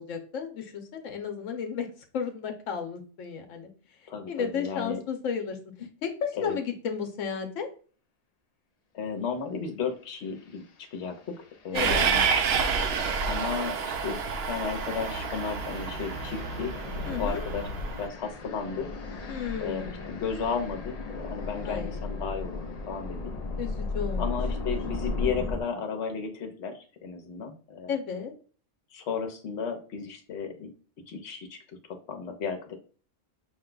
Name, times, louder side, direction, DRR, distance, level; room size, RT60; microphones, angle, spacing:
voice 1, 0.0-1.9 2.1-3.7 4.3-5.6 6.0-7.7 11.7-12.1 17.0-17.4 19.3-20.0 21.6-22.0 23.6-24.4 24.6-24.7 27.9-28.3, left 6 dB, 90° left, 5 dB, 1.1 m, -33 dB
voice 2, 4.1-5.0 6.4-6.6 8.9-11.4 11.6-12.3 13.3-14.2 14.4-17.7 18.0-18.9 19.6-22.6 22.9-23.3 24.2-27.9 28.9-30.7 31.1-31.6 31.9-32.8, left 6 dB, 65° left, 5 dB, 1.1 m, -34 dB
sound 1, 10.3-10.6 11.2-25.6, left 3 dB, 45° left, 0.5 m, -37 dB
Train, 11.8-18.1, right 5 dB, 65° right, 0.8 m, -29 dB
5.3 x 2.2 x 3.7 m, 0.40 s
omnidirectional pair, 1.3 m